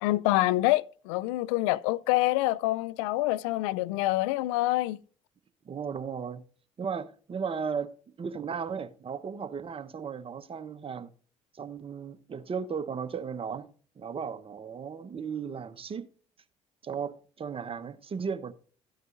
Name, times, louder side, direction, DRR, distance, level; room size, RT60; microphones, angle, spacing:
voice 1, 0.0-5.0, left 17 dB, 75° left, 0.4 m, -26 dB
voice 2, 5.6-6.4 6.8-7.9 8.2-11.1 11.5-13.7 14.0-16.1 16.8-18.5, right 6 dB, 35° right, 1.0 m, -35 dB
13.5 x 9.4 x 2.6 m
hypercardioid pair, 60°, 16 cm